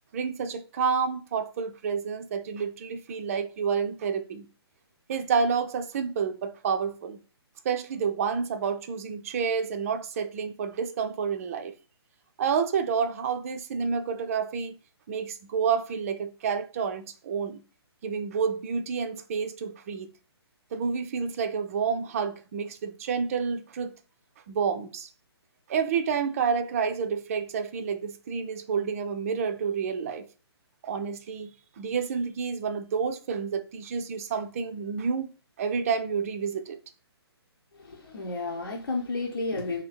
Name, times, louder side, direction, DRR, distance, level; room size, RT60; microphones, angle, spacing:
voice 1, 0.1-4.5 5.1-7.2 7.6-11.7 12.4-14.7 15.1-17.6 18.0-20.1 20.7-24.0 24.5-25.1 25.7-30.3 30.8-35.3 35.6-36.8, right 6 dB, 35° right, 0.4 m, -29 dB
voice 2, 37.7-39.8, left 3 dB, 65° left, 1.0 m, -32 dB
2.7 x 2.7 x 4.2 m
figure-of-eight pair, 130°, 14 cm